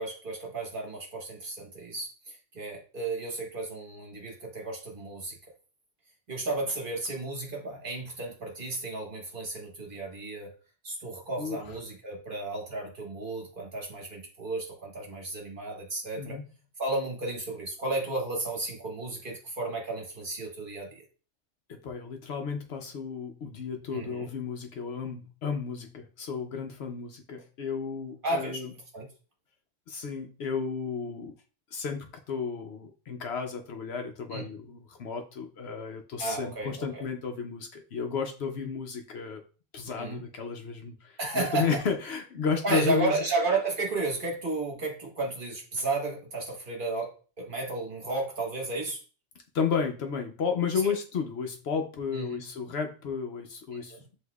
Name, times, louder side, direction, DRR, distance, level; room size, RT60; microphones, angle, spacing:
voice 1, 0.0-5.4 6.3-10.5 10.8-16.4 16.8-21.0 23.9-24.3 28.2-28.7 28.9-29.1 34.3-34.4 36.2-37.0 39.8-40.2 41.2-41.8 42.6-49.0 50.8-50.9 52.1-52.4 53.7-54.0, right 2 dB, 45° right, 0 dB, 1.3 m, -33 dB
voice 2, 21.7-28.7 29.9-31.3 31.7-39.4 39.7-43.1 49.5-53.9, left 6 dB, 65° left, 4 dB, 0.8 m, -33 dB
8.0 x 2.7 x 2.3 m, 0.37 s
omnidirectional pair, 1.3 m